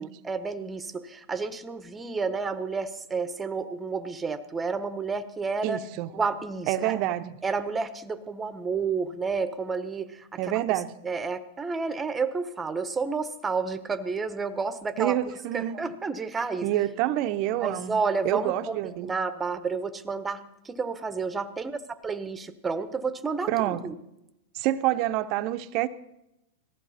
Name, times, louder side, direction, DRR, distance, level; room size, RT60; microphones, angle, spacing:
voice 1, 0.0-5.8 6.1-6.9 7.4-10.3 11.0-15.2 15.5-16.7 17.6-23.9, right 4 dB, 15° right, 12 dB, 1.1 m, -30 dB
voice 2, 5.6-6.1 6.7-7.4 10.4-10.9 15.0-15.8 16.6-19.1 23.5-23.9 24.5-25.9, right 14 dB, 50° right, 11 dB, 0.9 m, -27 dB
18.5 x 14.5 x 4.3 m, 0.87 s
hypercardioid pair, 110°, 0 cm